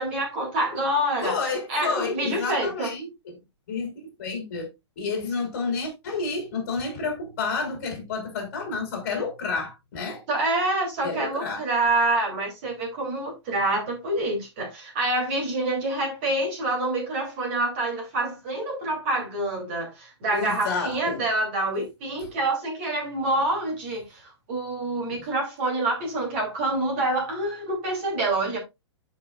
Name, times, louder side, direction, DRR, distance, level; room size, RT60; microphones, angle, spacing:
voice 1, 0.0-1.4 1.7-2.9 10.3-28.6, right 2 dB, 25° right, 3.0 m, -27 dB
voice 2, 1.2-3.4 3.7-3.9 4.2-4.7 5.0-10.2 11.0-11.7 20.3-21.2, left 4 dB, 35° left, 3.5 m, -30 dB
12.0 x 5.2 x 2.4 m
hypercardioid pair, 180°, 15 cm